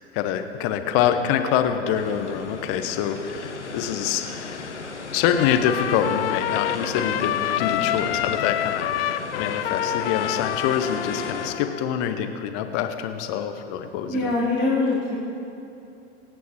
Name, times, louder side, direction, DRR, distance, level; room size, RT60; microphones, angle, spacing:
voice 1, 0.0-4.8 5.1-14.3, left 9 dB, 40° left, 8 dB, 1.1 m, -26 dB
sound 1, 1.9-11.5, left 3 dB, 85° left, 1.0 m, -35 dB
Trumpet, 5.3-11.9, left 11 dB, 60° left, 0.6 m, -27 dB
voice 2, 14.0-15.2, left 3 dB, 5° right, -12 dB, 3.6 m, -23 dB
26.0 x 9.4 x 3.1 m, 2.8 s
figure-of-eight pair, 85°, 34 cm